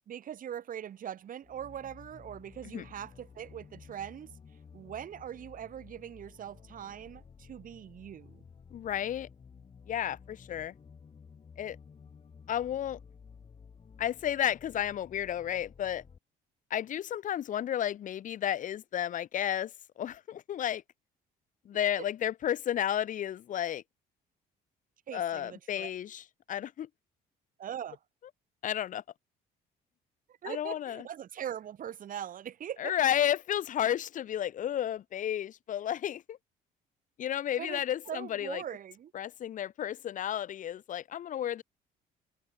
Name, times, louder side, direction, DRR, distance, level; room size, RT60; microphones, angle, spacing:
voice 1, 0.1-4.3 4.7-8.4 22.0-22.1 25.1-25.9 27.6-28.0 30.3-32.9 37.6-39.1, right 10 dB, 55° right, 6.8 m, -41 dB
sound 1, 1.4-16.2, left 6 dB, 35° left, 7.8 m, -54 dB
voice 2, 8.7-9.3 9.9-10.7 11.6-11.8 12.5-13.0 14.0-16.0 16.7-20.8 21.6-23.8 25.1-26.9 28.6-29.0 30.5-31.1 32.8-36.4 37.2-38.6 39.1-41.6, left 10 dB, 50° left, 0.9 m, -32 dB
cardioid pair, 110°, 17 cm